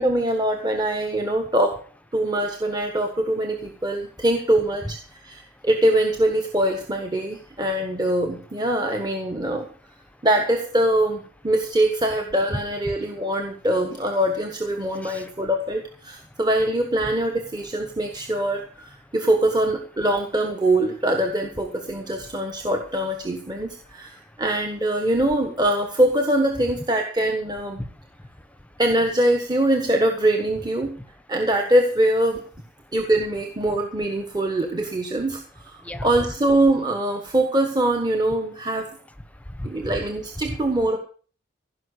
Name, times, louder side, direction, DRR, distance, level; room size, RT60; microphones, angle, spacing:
voice 1, 0.0-1.8 2.1-9.7 10.2-27.8 28.8-30.9 31.3-32.4 32.9-38.9 39.6-41.0, right 1 dB, 20° right, 4 dB, 1.4 m, -23 dB
voice 2, 5.3-5.7 10.1-10.2 12.9-13.0 14.9-15.3 16.3-16.4 17.8-17.9 19.0-19.1 23.9-24.4 27.8-28.8 30.8-30.9 32.8-32.9 35.8-36.1 39.3-39.9 40.5-40.6, left 1 dB, 5° left, 11 dB, 1.0 m, -38 dB
16.0 x 5.9 x 8.2 m, 0.42 s
head